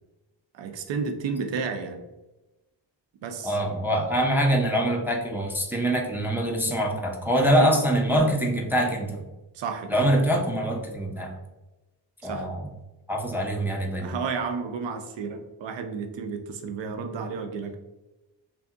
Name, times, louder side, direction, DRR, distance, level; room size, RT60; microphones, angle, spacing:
voice 1, 0.5-2.0 3.2-3.6 7.6-7.8 9.5-10.0 12.2-12.5 14.0-17.7, right 5 dB, 70° right, 6 dB, 0.5 m, -32 dB
voice 2, 3.4-9.2 9.9-11.3 12.2-12.7 13.1-14.1, right 1 dB, 5° right, 0 dB, 0.4 m, -24 dB
2.7 x 2.6 x 2.4 m, 1.0 s
cardioid pair, 55°, 46 cm